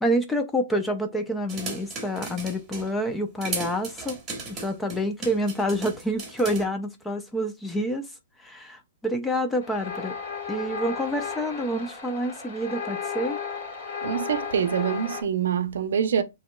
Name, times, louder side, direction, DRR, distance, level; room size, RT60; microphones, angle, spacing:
voice 1, 0.0-4.2 4.5-8.1 8.4-10.1 10.5-13.4, equal, 5° left, 0.4 m, -28 dB
sound 1, 1.5-2.9 3.4-6.6, right 4 dB, 15° right, 1.2 m, -36 dB
sound 2, 9.6-15.2, left 6 dB, 40° left, 1.8 m, -34 dB
voice 2, 14.0-16.2, right 8 dB, 70° right, 0.6 m, -25 dB
8.3 x 2.8 x 2.2 m
hypercardioid pair, 170°, 0 cm